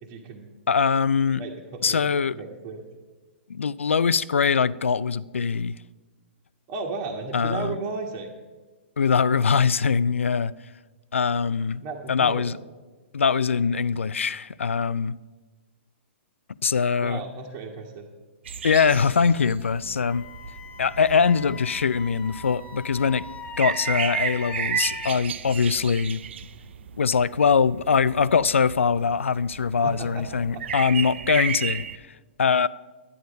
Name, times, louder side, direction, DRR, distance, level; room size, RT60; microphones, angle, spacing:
voice 1, 0.0-0.5 1.4-2.8 6.7-8.3 11.8-12.5 17.0-18.1 29.8-30.3 30.5-30.6 30.9-31.0, right 3 dB, 40° right, 1.5 m, -34 dB
voice 2, 0.7-1.4 1.8-2.4 3.5-5.8 7.3-7.8 9.0-10.5 11.1-11.8 12.1-12.5 13.1-15.1 16.6-17.2 18.6-20.2 20.8-23.2 23.6-26.2 27.0-32.0 32.4-32.7, left 6 dB, 80° left, 0.4 m, -22 dB
sound 1, 18.5-32.0, right 8 dB, 65° right, 0.5 m, -34 dB
Wind instrument woodwind instrument, 20.1-25.1, left 7 dB, 20° left, 0.9 m, -41 dB
11.0 x 10.0 x 5.3 m
hypercardioid pair, 120°, 7 cm